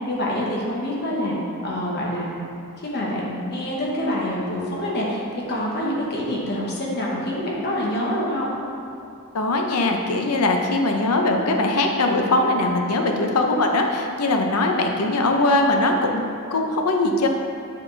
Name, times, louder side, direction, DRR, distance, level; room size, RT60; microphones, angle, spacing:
voice 1, 0.1-1.3 1.6-2.4 2.8-5.2 5.5-8.6 13.0-13.1, left 1 dB, 50° left, -4 dB, 1.2 m, -26 dB
voice 2, 9.3-17.3, left 2 dB, 90° left, 3 dB, 0.7 m, -21 dB
8.4 x 4.2 x 3.3 m, 2.7 s
head